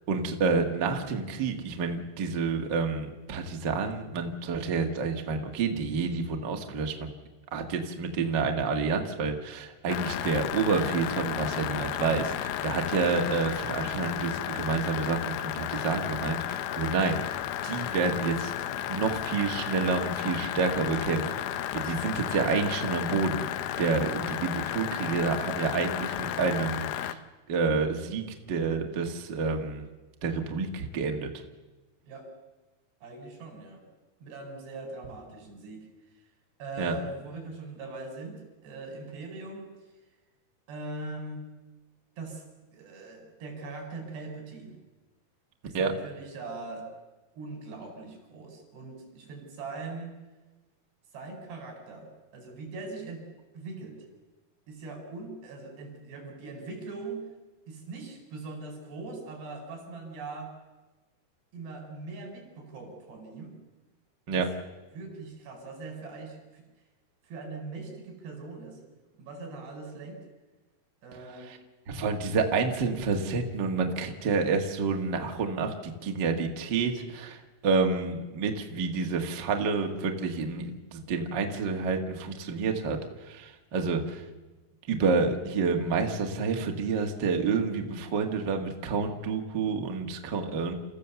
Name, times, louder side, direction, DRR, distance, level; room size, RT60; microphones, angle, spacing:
voice 1, 0.1-7.1 7.5-18.5 18.9-21.2 21.5-23.4 23.8-27.2 27.5-29.8 30.2-31.3 36.8-37.0 45.7-45.9 64.3-64.5 71.4-71.6 71.9-84.2 84.9-90.7, right 4 dB, 55° right, 3 dB, 1.2 m, -29 dB
sound 1, 9.9-27.1, left 12 dB, 75° left, 2.3 m, -33 dB
voice 2, 33.0-33.8 34.2-35.9 36.6-39.7 40.7-41.4 42.2-42.4 42.7-44.8 45.6-46.9 47.3-50.2 51.1-53.3 53.5-54.1 54.7-57.2 57.7-60.5 61.5-63.6 64.3-64.4 64.9-66.6 67.2-68.8 69.2-70.2 71.0-71.6, right 3 dB, 80° right, 3 dB, 6.7 m, -41 dB
30.0 x 15.0 x 7.0 m, 1.2 s
omnidirectional pair, 4.8 m